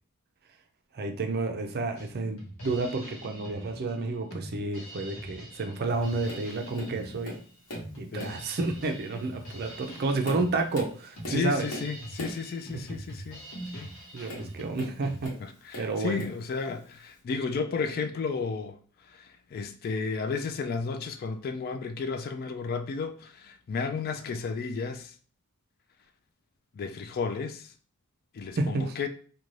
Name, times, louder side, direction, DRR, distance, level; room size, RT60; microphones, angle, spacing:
voice 1, 0.9-7.4 8.0-11.7 12.7-13.0 14.1-15.3 15.8-16.2 28.6-28.9, right 3 dB, 45° right, 0.4 m, -30 dB
Drum kit, 2.0-15.3, right 1 dB, 85° left, 0.9 m, -43 dB
Tap, 6.3-6.5 6.7-7.9 8.2-8.5 9.2-9.3 9.9-12.5 14.2-15.4 15.7-16.4 17.2-17.3, equal, 60° left, 1.1 m, -40 dB
voice 2, 11.3-13.4 13.7-13.9 15.4-18.8 19.1-25.1 26.7-27.7 28.3-29.1, left 5 dB, 45° left, 0.3 m, -33 dB
2.5 x 2.2 x 3.1 m
head